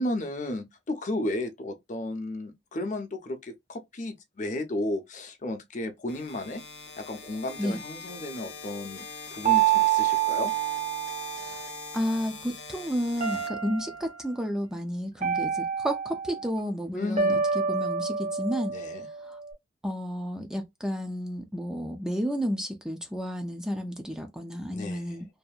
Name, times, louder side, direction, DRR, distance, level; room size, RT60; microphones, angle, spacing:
voice 1, 0.0-6.6 7.0-10.5 16.9-17.4 18.7-19.1 24.7-25.2, left 1 dB, 45° left, 0.6 m, -33 dB
sound 1, 6.1-14.1, left 5 dB, 85° left, 0.6 m, -43 dB
sound 2, 9.4-11.8 13.2-14.2 15.2-16.5 17.2-19.5, right 8 dB, 45° right, 0.7 m, -27 dB
voice 2, 11.9-18.8 19.2-19.4 19.8-25.3, equal, 5° right, 0.4 m, -32 dB
2.7 x 2.5 x 2.3 m
head